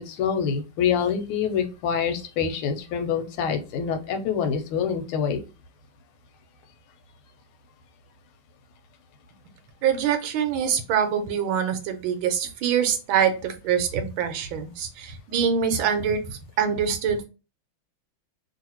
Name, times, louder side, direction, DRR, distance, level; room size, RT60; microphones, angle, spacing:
voice 1, 0.0-5.4, left 7 dB, 90° left, 7 dB, 1.5 m, -26 dB
voice 2, 9.8-16.2 16.6-17.2, right 7 dB, 75° right, 7 dB, 1.4 m, -24 dB
3.2 x 2.6 x 2.9 m, 0.30 s
omnidirectional pair, 2.3 m